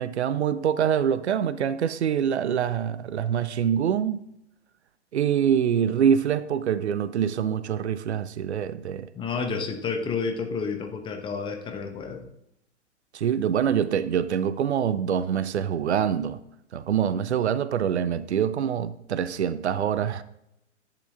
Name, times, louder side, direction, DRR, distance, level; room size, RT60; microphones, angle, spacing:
voice 1, 0.0-4.2 5.1-9.1 13.1-16.4 16.7-20.2, right 8 dB, 70° right, 0.6 m, -25 dB
voice 2, 9.1-12.3, left 5 dB, 15° left, 0.8 m, -30 dB
10.5 x 8.5 x 2.5 m
figure-of-eight pair, 110°, 35 cm